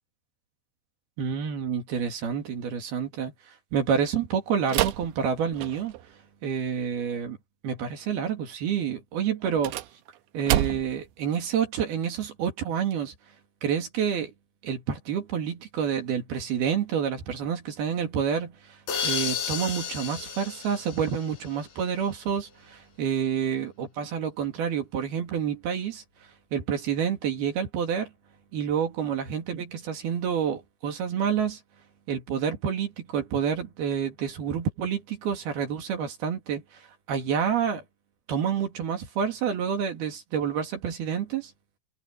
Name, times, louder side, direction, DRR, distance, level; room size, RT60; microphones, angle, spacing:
voice 1, 1.2-3.3 3.7-6.0 6.4-7.4 7.6-9.7 10.3-13.1 13.6-14.3 14.6-26.0 26.5-28.1 28.5-31.6 32.1-36.6 37.1-37.8 38.3-41.5, right 7 dB, 55° right, 3.9 m, -28 dB
sound 1, 4.7-6.1 9.4-11.1, right 13 dB, 75° right, 3.0 m, -29 dB
sound 2, 18.9-21.7, left 7 dB, 65° left, 6.6 m, -32 dB
omnidirectional pair, 5.7 m